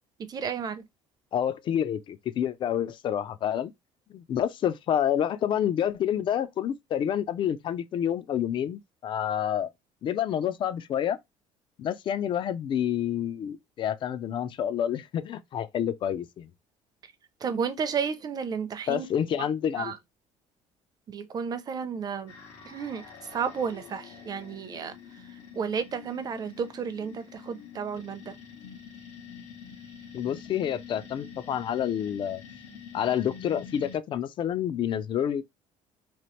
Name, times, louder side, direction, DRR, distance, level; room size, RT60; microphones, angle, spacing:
voice 1, 0.3-0.8 17.4-19.1 19.8-19.9 21.1-22.3 22.7-23.0 23.3-25.0 25.5-28.4, right 6 dB, 35° right, 0.5 m, -32 dB
voice 2, 1.3-3.7 4.1-9.7 10.0-11.2 11.8-16.5 18.9-19.9 30.1-32.4 32.9-35.4, left 9 dB, 40° left, 0.4 m, -28 dB
sound 1, 22.3-34.0, left 7 dB, 85° left, 1.1 m, -46 dB
2.9 x 2.4 x 3.1 m
cardioid pair, 125°, 12 cm